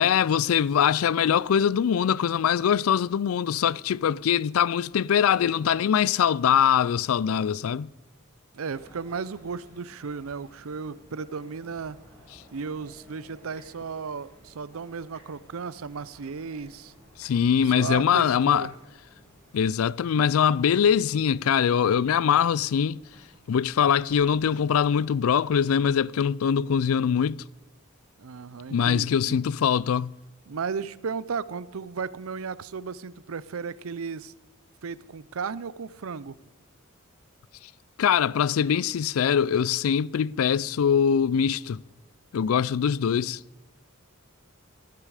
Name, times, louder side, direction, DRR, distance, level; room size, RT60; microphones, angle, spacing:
voice 1, 0.0-7.9 17.2-18.7 19.5-23.0 23.5-27.4 28.7-30.1 38.0-41.8 42.3-43.4, left 8 dB, 75° left, 0.4 m, -23 dB
voice 2, 8.5-12.0 12.5-16.9 17.7-18.7 28.2-29.4 30.5-34.3 34.8-36.4, right 5 dB, 75° right, 0.6 m, -35 dB
sound 1, 8.6-25.0, equal, 10° left, 6.5 m, -56 dB
17.5 x 12.5 x 4.9 m
head